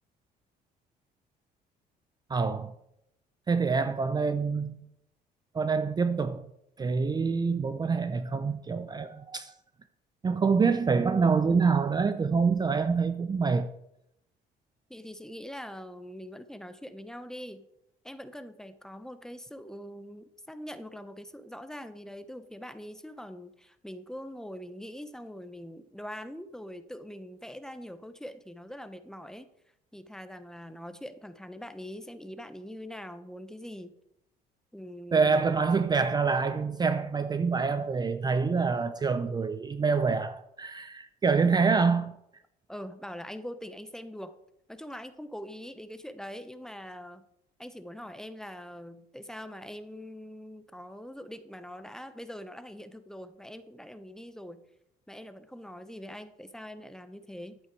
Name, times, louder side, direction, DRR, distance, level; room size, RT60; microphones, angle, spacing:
voice 1, 2.3-2.7 3.5-4.8 5.5-6.5 6.8-9.5 10.2-13.7 35.1-42.1, right 5 dB, 25° right, 0.6 m, -26 dB
voice 2, 14.9-17.7 18.0-29.5 29.9-33.9 34.7-35.6 42.7-44.4 44.7-47.2 47.6-54.6 55.1-57.6, equal, 5° left, 0.8 m, -43 dB
11.5 x 8.2 x 4.7 m
cardioid pair, 110°, 17 cm